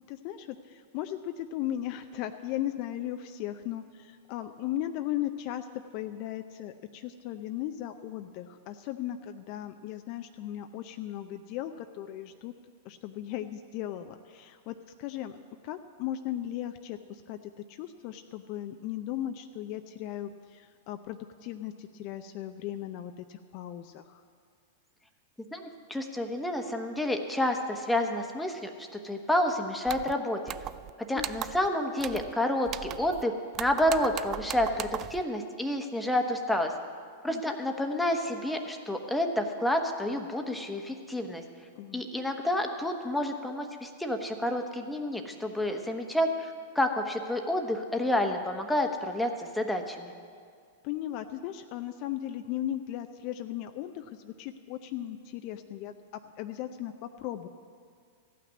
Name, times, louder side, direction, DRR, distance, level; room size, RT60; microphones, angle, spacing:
voice 1, 0.1-5.7 5.9-12.5 12.8-15.4 15.6-24.2 31.1-31.3 37.3-37.6 41.8-42.0 50.8-55.9 56.4-57.5, left 12 dB, 50° left, 8 dB, 0.5 m, -37 dB
voice 2, 25.5-30.6 31.1-36.7 37.2-41.4 41.9-50.1, left 1 dB, 5° left, 4 dB, 1.2 m, -29 dB
sound 1, 29.9-30.1 30.5-30.9 31.2-31.7 32.0-32.3 32.7-33.2 33.5-35.2, right 12 dB, 35° right, 0.3 m, -38 dB
14.5 x 6.0 x 9.3 m, 2.1 s
hypercardioid pair, 105°, 0 cm